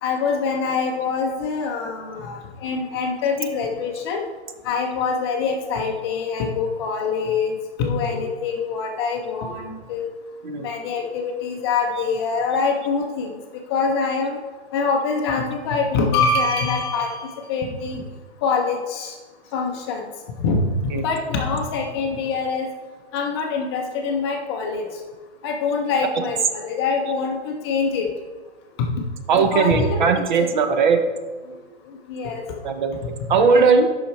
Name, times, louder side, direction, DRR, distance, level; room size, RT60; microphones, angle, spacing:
voice 1, 0.0-4.2 4.6-7.5 7.8-10.1 10.6-13.3 13.7-14.4 14.7-18.0 18.4-19.1 19.5-20.0 20.4-22.7 23.1-24.8 25.4-28.1 28.8-28.9 29.3-30.5 31.5-31.6 32.1-32.4 33.0-33.7, left 4 dB, 25° left, 2 dB, 0.6 m, -24 dB
voice 2, 29.3-31.0 32.6-33.0 33.3-33.9, right 5 dB, 45° right, 7 dB, 0.6 m, -18 dB
7.1 x 5.6 x 4.5 m, 1.3 s
hypercardioid pair, 150°, 34 cm